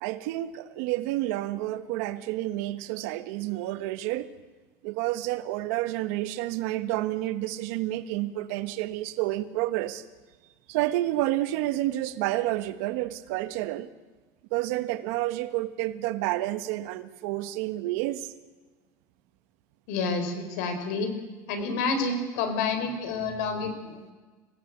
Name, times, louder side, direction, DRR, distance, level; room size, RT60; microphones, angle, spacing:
voice 1, 0.0-4.3 4.8-10.0 10.7-13.9 14.5-18.3, right 16 dB, 80° right, 1.4 m, -29 dB
voice 2, 19.9-21.1 21.5-24.0, left 4 dB, 90° left, 4.9 m, -29 dB
26.0 x 17.5 x 8.2 m
cardioid pair, 165°, 8 cm